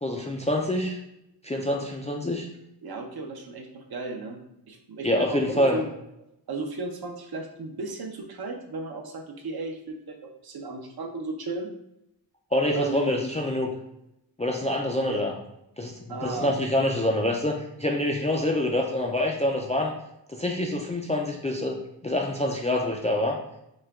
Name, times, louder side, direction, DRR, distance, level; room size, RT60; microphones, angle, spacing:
voice 1, 0.0-1.0 1.4-2.5 5.0-5.8 12.5-13.7 14.4-15.3 15.8-19.9 20.3-23.4, left 1 dB, 15° left, 0 dB, 0.3 m, -26 dB
voice 2, 2.8-4.4 4.7-5.9 6.5-11.7 12.7-13.0 15.1-15.2 16.1-16.5, right 3 dB, 55° right, 4 dB, 0.7 m, -35 dB
6.2 x 2.2 x 3.4 m, 0.84 s
wide cardioid pair, 170°, 44 cm